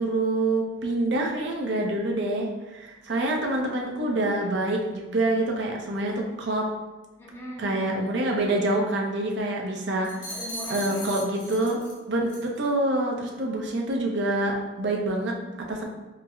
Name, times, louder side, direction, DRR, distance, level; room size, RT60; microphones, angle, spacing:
voice 1, 0.0-6.7 7.6-10.1 10.7-11.8 12.1-15.8, right 2 dB, 65° right, 0 dB, 0.5 m, -26 dB
voice 2, 7.2-7.9 9.9-11.1, equal, 15° left, -7 dB, 0.9 m, -40 dB
sound 1, 10.0-12.0 12.3-12.6, equal, 40° left, 0.6 m, -38 dB
4.5 x 2.0 x 2.3 m, 1.1 s
head